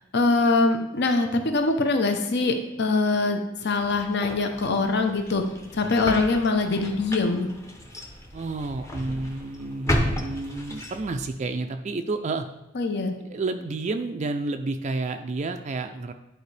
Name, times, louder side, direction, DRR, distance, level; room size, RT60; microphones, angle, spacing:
voice 1, 0.0-5.4 5.7-7.5 12.7-13.1, left 3 dB, 55° left, 5 dB, 0.7 m, -23 dB
sound 1, 3.8-11.3, equal, 15° left, 0.7 m, -33 dB
voice 2, 8.3-12.4 13.2-16.1, right 3 dB, 35° right, 7 dB, 0.4 m, -30 dB
11.0 x 4.4 x 3.3 m, 0.98 s
head